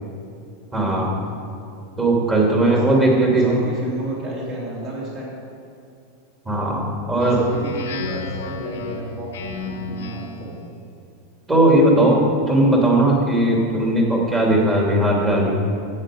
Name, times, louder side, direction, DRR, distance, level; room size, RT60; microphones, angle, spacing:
voice 1, 0.7-1.1 2.0-3.5 6.5-7.4 11.5-12.2 12.5-15.5, right 1 dB, 15° right, -3 dB, 2.8 m, -18 dB
voice 2, 2.5-3.0 3.4-5.3 7.1-10.6, right 1 dB, 35° right, -5 dB, 3.3 m, -33 dB
Speech synthesizer, 7.2-10.5, left 3 dB, 90° left, 1.3 m, -31 dB
13.0 x 8.8 x 5.2 m, 2.5 s
supercardioid pair, 140°, 0 cm